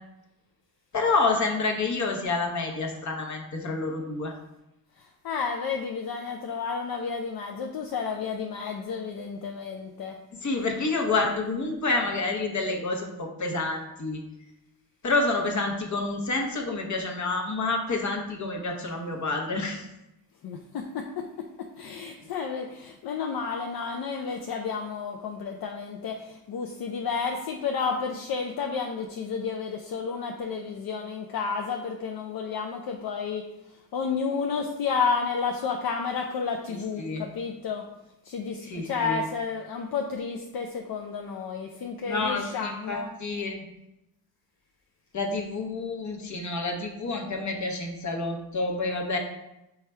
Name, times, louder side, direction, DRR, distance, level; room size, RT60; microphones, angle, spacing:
voice 1, 0.9-4.3 10.4-14.2 15.0-19.9 36.7-37.3 38.6-39.2 42.0-43.6 45.1-49.2, left 3 dB, 50° left, 2 dB, 0.8 m, -28 dB
voice 2, 5.0-10.2 20.4-21.2 21.8-33.4 33.9-37.8 38.2-43.1, left 5 dB, 70° left, 2 dB, 0.5 m, -31 dB
4.7 x 2.3 x 4.2 m, 0.90 s
cardioid pair, 85°, 38 cm